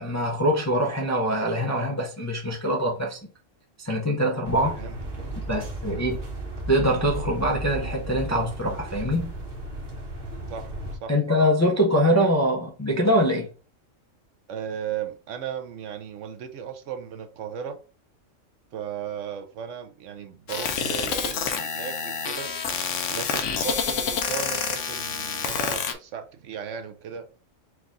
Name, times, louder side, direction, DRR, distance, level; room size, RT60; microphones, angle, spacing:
voice 1, 0.0-3.2 3.8-4.8 5.5-6.2 6.7-9.3 11.1-13.5, equal, 25° left, 0.4 m, -23 dB
sound 1, 4.4-11.0, right 1 dB, 45° right, 1.1 m, -34 dB
voice 2, 4.6-5.0 5.9-6.1 10.5-10.7 11.0-11.1 14.5-17.8 18.7-22.5 23.1-27.3, right 8 dB, 70° right, 0.9 m, -36 dB
sound 2, 20.5-25.9, left 6 dB, 70° left, 1.0 m, -28 dB
4.6 x 2.3 x 3.8 m
omnidirectional pair, 1.4 m